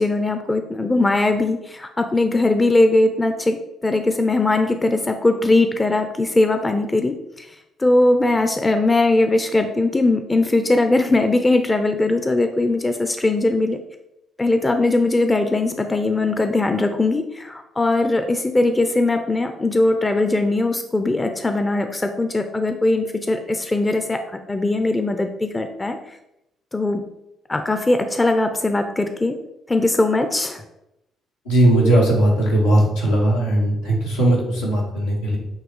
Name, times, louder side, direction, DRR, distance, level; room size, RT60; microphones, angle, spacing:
voice 1, 0.0-3.6 3.8-7.5 7.8-13.8 14.4-24.2 24.5-26.0 26.7-27.1 27.5-29.3 29.7-30.6, left 2 dB, 20° left, 7 dB, 0.7 m, -20 dB
voice 2, 31.5-35.4, right 1 dB, 85° left, -6 dB, 1.9 m, -18 dB
7.5 x 3.1 x 4.8 m, 0.87 s
figure-of-eight pair, 45°, 0 cm